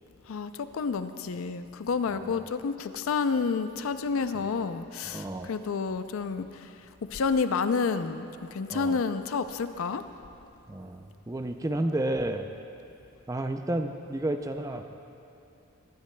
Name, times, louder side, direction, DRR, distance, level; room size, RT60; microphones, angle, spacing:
voice 1, 0.3-6.5 7.1-8.3 8.5-10.0, left 5 dB, 70° left, 10 dB, 0.4 m, -29 dB
voice 2, 2.1-2.5 4.3-4.5 5.1-5.5 8.7-9.0 10.7-12.5 13.3-14.8, right 1 dB, 15° right, 6 dB, 0.4 m, -31 dB
19.0 x 11.5 x 2.2 m, 2.8 s
head